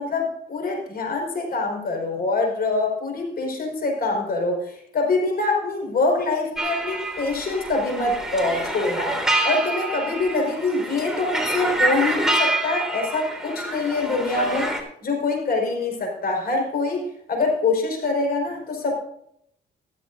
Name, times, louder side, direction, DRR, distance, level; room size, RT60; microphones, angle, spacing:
voice 1, 0.0-9.1 9.4-14.7 15.0-18.9, left 3 dB, 50° left, 2 dB, 5.1 m, -24 dB
sound 1, 6.6-14.8, right 1 dB, ahead, 3.7 m, -27 dB
15.5 x 14.0 x 2.7 m, 0.71 s
cardioid pair, 90°, 20 cm